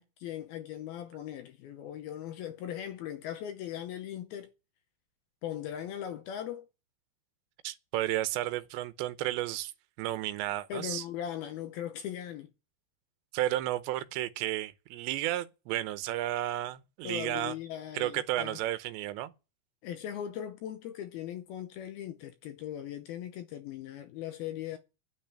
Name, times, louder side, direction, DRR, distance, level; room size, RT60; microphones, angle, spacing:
voice 1, 0.0-4.5 5.4-6.7 10.7-12.5 17.0-18.6 19.8-24.8, left 10 dB, 75° left, 2.3 m, -39 dB
voice 2, 7.6-9.7 10.0-11.0 13.3-17.5 17.9-19.3, right 14 dB, 80° right, 3.1 m, -32 dB
9.4 x 9.2 x 8.8 m
omnidirectional pair, 5.1 m